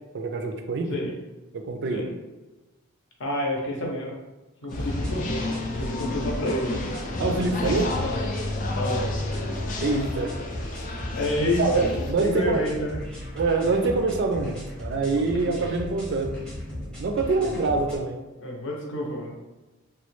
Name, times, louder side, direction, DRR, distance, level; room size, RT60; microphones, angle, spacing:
voice 1, 0.1-1.0 1.5-2.0 7.2-7.8 9.8-10.3 11.6-12.6 13.4-16.3 17.0-18.2, right 3 dB, 55° right, 4 dB, 0.4 m, -25 dB
voice 2, 3.2-4.1 4.6-5.4 5.7-6.8 7.6-7.8 8.7-9.1 11.2-11.8 12.2-13.0 18.4-19.5, left 1 dB, 60° left, -1 dB, 0.7 m, -28 dB
sound 1, 4.7-12.1, left 2 dB, 35° left, 0.3 m, -30 dB
sound 2, 4.7-18.0, left 1 dB, 5° left, 0.6 m, -37 dB
3.1 x 2.2 x 3.1 m, 1.1 s
head